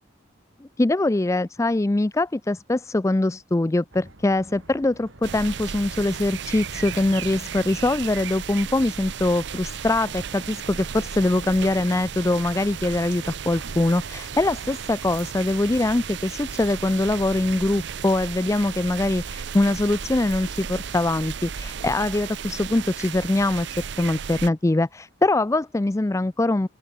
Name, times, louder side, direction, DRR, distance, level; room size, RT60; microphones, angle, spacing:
voice 1, 0.6-23.7 24.0-26.7, left 2 dB, 15° left, 0.4 m, -23 dB
sound 1, 3.9-15.6, right 2 dB, 90° right, 2.3 m, -49 dB
sound 2, 5.2-24.5, right 7 dB, 65° right, 0.6 m, -35 dB
open air
head